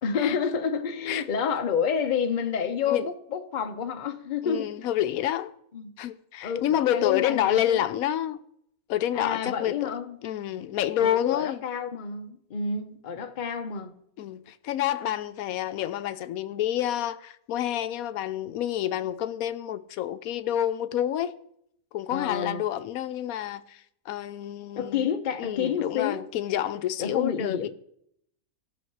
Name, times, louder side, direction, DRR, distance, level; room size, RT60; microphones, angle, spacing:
voice 1, 0.0-4.7 5.7-5.9 6.4-7.9 9.1-10.2 11.0-14.0 22.1-22.6 24.7-26.3 27.0-27.7, left 6 dB, 40° left, 0.8 m, -29 dB
voice 2, 4.4-5.5 6.0-8.4 8.9-9.9 10.2-11.6 14.2-21.4 21.9-25.1 25.4-27.7, left 11 dB, 75° left, 1.1 m, -28 dB
16.0 x 6.5 x 4.6 m
omnidirectional pair, 1.5 m